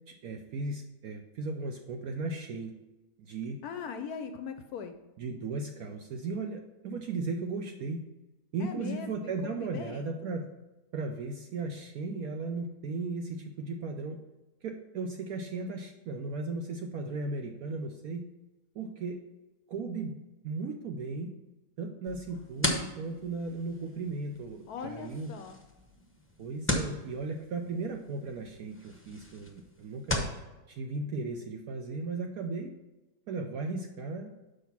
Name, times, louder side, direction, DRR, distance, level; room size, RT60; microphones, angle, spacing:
voice 1, 0.1-2.7 3.2-3.6 5.2-8.0 8.5-10.5 10.9-14.2 14.6-18.2 18.7-19.2 19.7-20.2 20.4-21.3 21.8-25.3 26.4-30.3 30.7-32.7 33.3-34.3, right 3 dB, 65° right, 4 dB, 1.0 m, -36 dB
voice 2, 3.6-4.9 8.6-10.1 24.7-25.6, left 6 dB, 70° left, 8 dB, 0.9 m, -40 dB
sound 1, 22.1-30.4, left 1 dB, 10° left, 0.6 m, -37 dB
6.4 x 5.1 x 5.8 m, 1.0 s
omnidirectional pair, 1.8 m